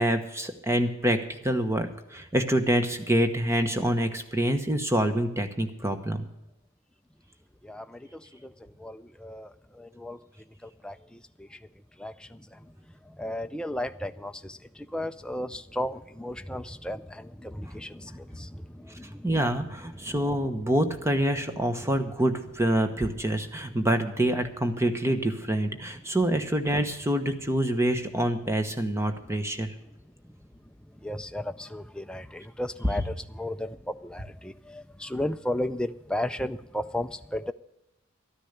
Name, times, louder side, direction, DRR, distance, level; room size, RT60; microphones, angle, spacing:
voice 1, 0.0-6.3 19.2-29.7, right 1 dB, 10° right, 7 dB, 1.0 m, -26 dB
voice 2, 7.6-8.5 8.8-10.2 10.6-11.6 12.0-12.6 13.1-19.4 20.0-20.2 31.0-37.5, left 1 dB, 5° left, 9 dB, 0.4 m, -35 dB
13.0 x 10.0 x 6.6 m, 0.90 s
head